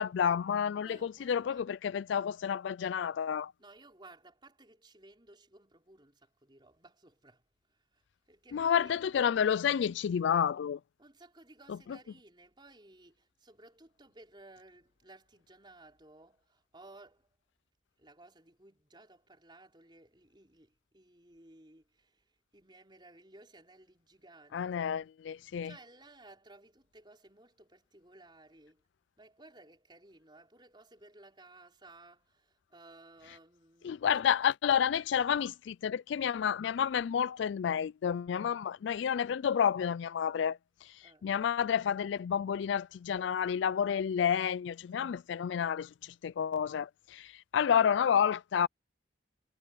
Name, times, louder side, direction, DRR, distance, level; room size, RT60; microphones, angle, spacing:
voice 1, 0.0-3.5 8.5-10.8 24.5-25.7 33.8-40.6 41.2-45.9 46.2-47.3 47.5-48.7, left 8 dB, 70° left, 0.3 m, -30 dB
voice 2, 0.8-1.7 3.6-7.4 7.7-9.0 11.0-17.3 18.0-25.0 25.6-28.8 29.2-34.2 41.0-41.3, right 2 dB, 25° right, 5.1 m, -57 dB
head